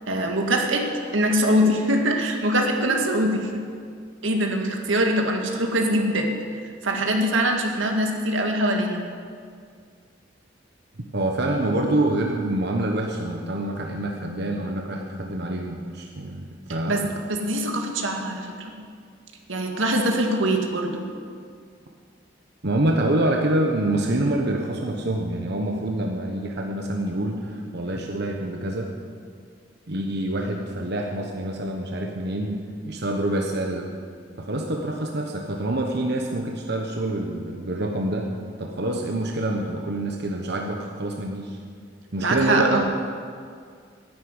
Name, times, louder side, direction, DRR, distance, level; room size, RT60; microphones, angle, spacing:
voice 1, 0.1-0.9 1.1-3.5 4.2-6.4 6.8-9.0 16.9-18.8 19.5-21.0 42.2-42.8, right 1 dB, 90° right, 2 dB, 2.0 m, -23 dB
voice 2, 11.1-17.1 22.6-28.9 29.9-32.6 32.9-33.9 34.4-38.3 38.6-41.6 42.1-42.8, right 1 dB, 60° right, 1 dB, 1.2 m, -26 dB
11.0 x 10.0 x 9.7 m, 2.1 s
head